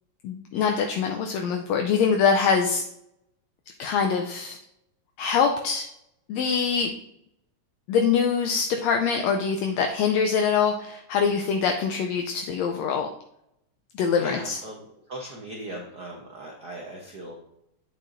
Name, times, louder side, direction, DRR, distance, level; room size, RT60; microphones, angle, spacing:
voice 1, 0.2-2.8 3.8-4.6 5.2-5.9 6.3-6.9 7.9-13.1 13.9-14.6, left 6 dB, 75° left, 3 dB, 1.7 m, -24 dB
voice 2, 14.2-14.8 15.1-17.3, right 1 dB, 85° right, -1 dB, 0.8 m, -38 dB
8.8 x 7.5 x 2.6 m, 0.78 s
omnidirectional pair, 3.4 m